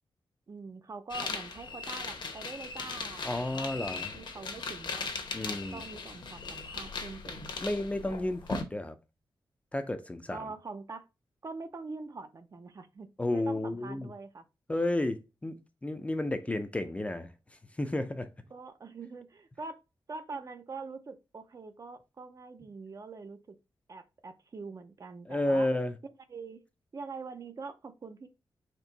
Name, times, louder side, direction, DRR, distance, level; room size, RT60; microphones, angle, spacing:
voice 1, 0.5-5.1 5.4-7.7 10.3-11.1 11.4-14.4 18.5-19.8 20.1-23.6 23.9-25.7 26.3-26.6 26.9-28.3, right 4 dB, 40° right, 0.5 m, -44 dB
sound 1, 1.1-8.6, left 4 dB, 60° left, 0.9 m, -38 dB
voice 2, 3.2-4.1 5.3-5.8 7.6-9.0 9.7-10.4 13.2-14.1 14.7-17.3 17.8-18.3 25.3-25.9, left 1 dB, 15° left, 0.4 m, -32 dB
4.4 x 2.9 x 3.9 m
wide cardioid pair, 145°, 9 cm